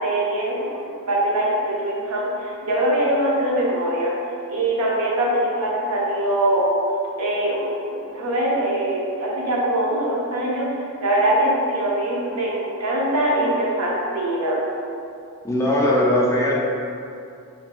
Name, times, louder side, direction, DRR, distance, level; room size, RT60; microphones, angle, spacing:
voice 1, 0.0-4.1 4.5-6.7 7.2-10.7 11.0-14.6, right 1 dB, 85° right, -4 dB, 0.6 m, -22 dB
voice 2, 15.4-16.6, left 1 dB, 15° left, -5 dB, 0.3 m, -19 dB
2.6 x 2.2 x 2.9 m, 2.5 s
head